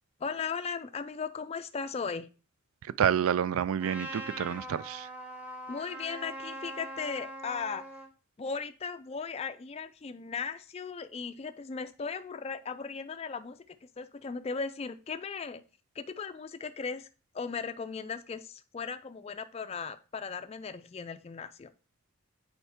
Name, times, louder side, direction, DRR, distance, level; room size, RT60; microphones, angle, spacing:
voice 1, 0.2-2.3 5.7-7.8 8.4-15.6 16.0-17.1 17.3-21.7, left 5 dB, 30° left, 0.3 m, -37 dB
voice 2, 3.0-5.1, right 8 dB, 80° right, 0.3 m, -28 dB
Trumpet, 3.8-8.1, right 1 dB, 5° right, 0.9 m, -42 dB
6.9 x 4.5 x 3.5 m
head